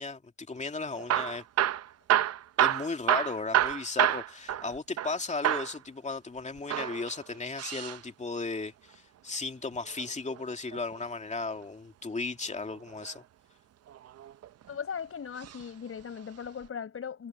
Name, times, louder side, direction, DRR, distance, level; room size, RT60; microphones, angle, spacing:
voice 1, 0.0-1.5 2.6-13.2, left 3 dB, 25° left, 2.6 m, -35 dB
Hammer / Drill, 0.9-5.2 5.4-5.8 6.6-8.0 9.8-11.0 12.7-13.2 13.9-14.7 15.4-15.6 15.9-16.0 16.7-16.8, right 11 dB, 55° right, 0.7 m, -29 dB
voice 2, 14.7-17.3, left 7 dB, 45° left, 5.9 m, -38 dB
cardioid pair, 90°, 30 cm